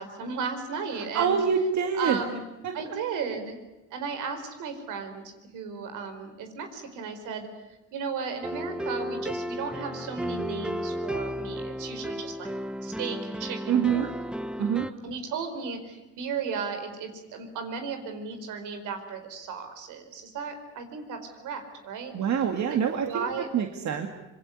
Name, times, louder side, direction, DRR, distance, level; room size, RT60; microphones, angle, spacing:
voice 1, 0.0-1.4 2.0-2.5 2.7-3.6 3.9-7.5 7.9-12.5 12.8-14.1 15.0-22.1 22.7-23.5, right 5 dB, 90° right, 6 dB, 4.7 m, -35 dB
voice 2, 1.0-2.2 2.6-2.7 13.7-14.1 14.6-14.9 22.1-23.3 23.5-24.1, right 7 dB, 65° right, 4 dB, 2.2 m, -25 dB
sound 1, 8.4-14.9, equal, 5° right, 1.1 m, -34 dB
25.5 x 22.0 x 9.7 m, 1.0 s
cardioid pair, 90°, 30 cm